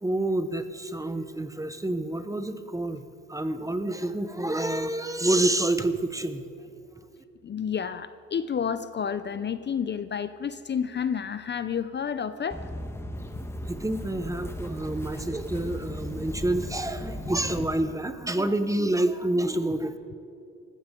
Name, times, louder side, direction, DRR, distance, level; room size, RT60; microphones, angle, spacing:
voice 1, 0.0-3.0 3.3-6.5 13.7-19.9, right 1 dB, 10° right, 10 dB, 0.9 m, -28 dB
voice 2, 7.4-12.6, left 7 dB, 35° left, 12 dB, 0.6 m, -30 dB
sound 1, 12.5-17.6, left 1 dB, 10° left, 1.2 m, -36 dB
19.0 x 14.5 x 3.8 m, 2.6 s
cardioid pair, 90°, 30 cm